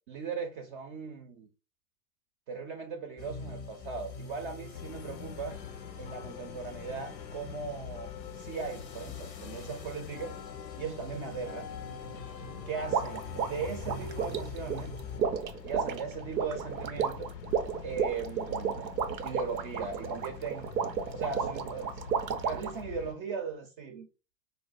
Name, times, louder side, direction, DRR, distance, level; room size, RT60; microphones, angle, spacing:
voice 1, 0.1-1.5 2.5-5.6 6.0-10.4 10.8-11.7 12.7-14.9 15.6-17.3 17.8-18.9 19.2-20.7 21.1-22.0 22.4-24.1, right 5 dB, 35° right, 0.5 m, -38 dB
sound 1, 3.2-15.2, left 4 dB, 30° left, 0.5 m, -45 dB
sound 2, 4.7-23.1, left 8 dB, 80° left, 0.5 m, -45 dB
sound 3, 12.9-22.8, right 6 dB, 90° right, 0.6 m, -32 dB
4.0 x 2.0 x 2.4 m
hypercardioid pair, 100°, 50 cm